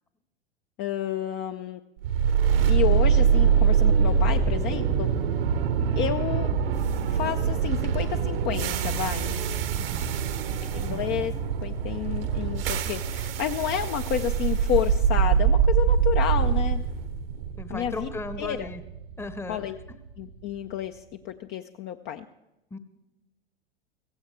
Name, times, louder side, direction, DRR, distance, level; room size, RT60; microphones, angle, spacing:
voice 1, 0.8-1.8 2.6-5.1 6.0-6.5 7.1-9.3 10.7-16.8 17.7-18.1 18.4-18.7 19.5-19.8 20.2-22.3, left 11 dB, 35° left, 8 dB, 0.5 m, -30 dB
sound 1, 2.0-20.1, right 7 dB, 70° right, 1.1 m, -24 dB
voice 2, 9.7-10.2 10.9-11.0 17.6-18.8 19.2-19.6 22.7-22.8, left 2 dB, 10° left, 12 dB, 0.8 m, -37 dB
16.0 x 15.5 x 3.2 m, 0.96 s
hypercardioid pair, 90°, 30 cm